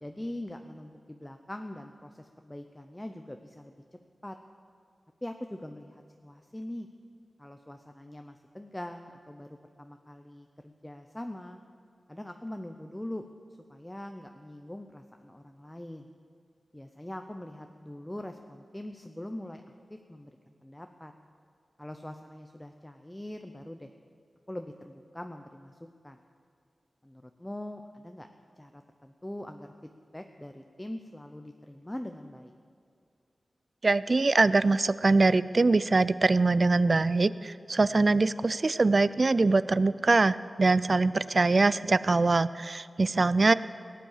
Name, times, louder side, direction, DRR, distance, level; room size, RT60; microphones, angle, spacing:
voice 1, 0.0-3.7 4.2-4.4 5.2-6.9 7.4-11.6 12.1-13.3 13.7-16.1 16.7-19.6 19.9-21.1 21.8-23.9 24.5-26.2 27.0-28.3 28.6-32.5, left 1 dB, 10° left, 6 dB, 0.6 m, -42 dB
voice 2, 33.8-43.5, right 3 dB, 40° right, 17 dB, 0.4 m, -23 dB
18.0 x 9.2 x 7.2 m, 2.4 s
wide cardioid pair, 115°, 0 cm